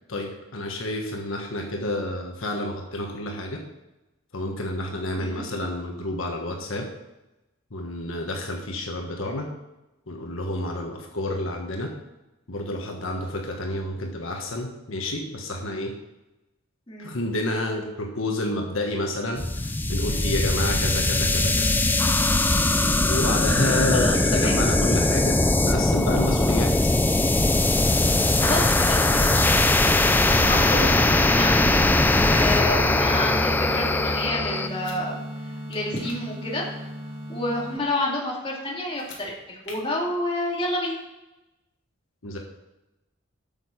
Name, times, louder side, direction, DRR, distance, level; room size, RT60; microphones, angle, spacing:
voice 1, 0.1-3.6 4.3-6.9 7.7-9.5 10.1-11.9 12.5-15.9 17.0-21.7 23.1-25.4 25.6-26.9 42.2-42.4, left 1 dB, 75° left, 2 dB, 1.4 m, -29 dB
sound 1, 19.4-34.7, left 2 dB, 10° left, 0.4 m, -21 dB
voice 2, 23.9-24.6 28.4-29.5 30.3-35.2 35.5-36.7 37.3-41.0, left 1 dB, 25° left, -3 dB, 2.4 m, -29 dB
sound 2, 32.8-37.8, equal, 25° right, 1.2 m, -35 dB
sound 3, 34.6-35.0 35.7-36.2 38.9-39.2 39.6-39.8, left 4 dB, 60° left, 2.3 m, -43 dB
8.8 x 6.7 x 5.8 m, 0.97 s
head